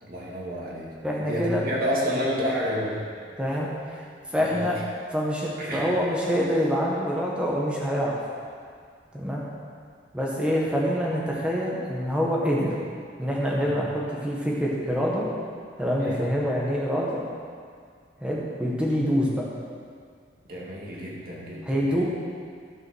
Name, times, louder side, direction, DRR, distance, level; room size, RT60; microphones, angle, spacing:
voice 1, 0.0-3.1 4.4-4.6 5.6-5.9 13.6-13.8 16.0-16.2 20.5-22.0, equal, 50° right, -5 dB, 2.5 m, -30 dB
voice 2, 1.0-1.6 3.4-4.0 4.3-4.8 5.1-8.1 9.1-9.4 10.1-12.7 13.2-15.3 15.8-17.2 18.2-19.3 21.6-22.0, equal, 5° right, -4 dB, 1.6 m, -26 dB
12.5 x 6.1 x 6.4 m, 2.1 s
head